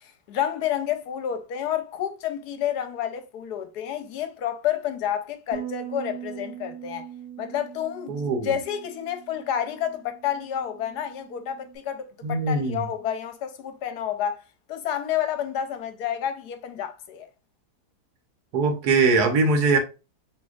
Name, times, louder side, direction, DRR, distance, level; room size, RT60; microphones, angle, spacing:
voice 1, 0.0-7.1 7.4-8.2 8.4-14.4 14.7-17.3, left 10 dB, 75° left, 1.2 m, -29 dB
Bass guitar, 5.5-11.8, right 10 dB, 90° right, 1.4 m, -41 dB
voice 2, 8.1-8.5 12.2-12.8 18.5-19.8, right 3 dB, 75° right, 1.5 m, -21 dB
4.8 x 3.4 x 2.4 m
omnidirectional pair, 1.7 m